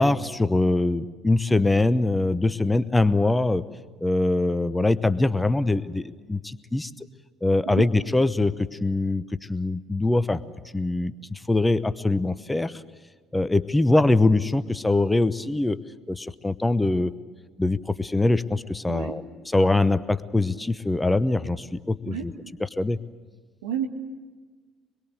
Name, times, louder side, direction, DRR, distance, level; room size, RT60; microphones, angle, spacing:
voice 1, 0.0-3.6 4.0-7.1 7.4-10.4 10.7-12.8 13.3-15.8 16.1-17.1 17.6-19.2 19.5-22.2 22.8-23.0, left 2 dB, 10° left, 15 dB, 0.9 m, -23 dB
voice 2, 18.9-19.2 22.0-22.3 23.6-23.9, right 9 dB, 75° right, 3 dB, 2.2 m, -30 dB
25.0 x 22.0 x 8.0 m, 1.4 s
figure-of-eight pair, 55°, 0 cm